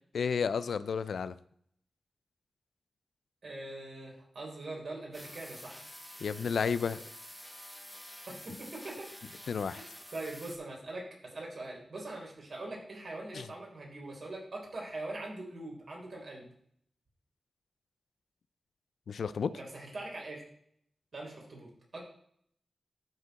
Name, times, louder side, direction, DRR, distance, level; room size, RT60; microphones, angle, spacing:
voice 1, 0.1-1.3 6.2-7.0 9.5-9.8 13.3-13.5 19.1-19.6, left 6 dB, 80° left, 15 dB, 0.4 m, -32 dB
voice 2, 3.4-5.8 8.3-9.1 10.1-16.5 19.5-20.4 21.1-22.0, right 2 dB, 70° right, -2 dB, 3.6 m, -42 dB
sound 1, 5.1-10.6, equal, 5° left, 1.4 m, -49 dB
13.0 x 4.4 x 4.1 m, 0.67 s
cardioid pair, 40°, 0 cm